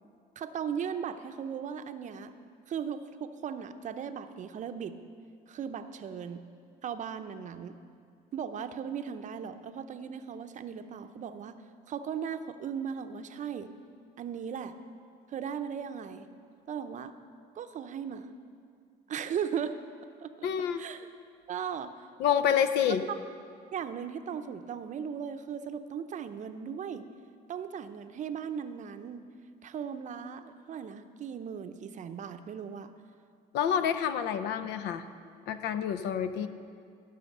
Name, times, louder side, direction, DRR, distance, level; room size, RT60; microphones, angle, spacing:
voice 1, 0.4-2.3 2.7-5.0 5.5-6.4 6.8-7.7 8.3-11.6 11.9-13.7 14.2-14.7 15.3-16.3 16.7-17.1 17.5-18.3 19.1-19.7 20.2-20.5 20.8-21.1 21.5-22.1 22.9-23.0 23.7-27.1 27.5-29.2 29.6-32.9, right 7 dB, 45° right, 9 dB, 0.6 m, -37 dB
voice 2, 20.4-20.8 22.2-23.0 33.5-35.0 35.5-36.5, left 8 dB, 85° left, 11 dB, 0.6 m, -28 dB
14.0 x 5.7 x 6.6 m, 2.3 s
cardioid pair, 110°, 17 cm